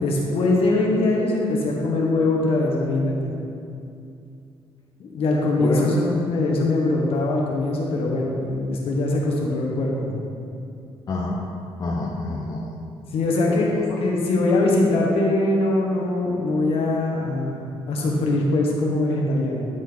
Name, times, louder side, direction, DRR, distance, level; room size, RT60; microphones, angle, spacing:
voice 1, 0.0-3.3 5.0-10.1 13.1-13.7 14.0-19.6, left 2 dB, 70° left, -2 dB, 1.5 m, -22 dB
voice 2, 5.6-5.9 11.1-11.4 11.8-12.7 13.5-14.0, left 3 dB, 40° left, -1 dB, 0.7 m, -27 dB
12.0 x 4.2 x 4.1 m, 2.5 s
cardioid pair, 115°, 10 cm